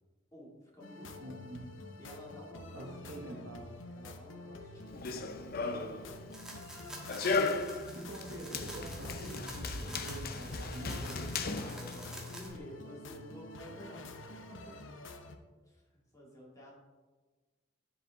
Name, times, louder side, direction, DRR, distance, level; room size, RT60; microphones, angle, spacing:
voice 1, 0.3-1.4 2.0-3.4 3.9-5.1 5.4-6.1 11.5-14.1 14.5-14.9 15.7-16.7, equal, 20° left, -5 dB, 2.3 m, -51 dB
sound 1, 0.8-15.4, left 2 dB, 90° left, 0.7 m, -49 dB
voice 2, 1.2-1.6 2.7-3.6 5.3-5.4 7.9-11.2, right 1 dB, 75° right, 1 dB, 1.2 m, -45 dB
Run, 4.9-12.6, left 3 dB, 50° left, 0.6 m, -37 dB
sound 2, 6.3-12.5, right 1 dB, 5° right, 1.4 m, -48 dB
9.9 x 5.2 x 3.6 m, 1.3 s
head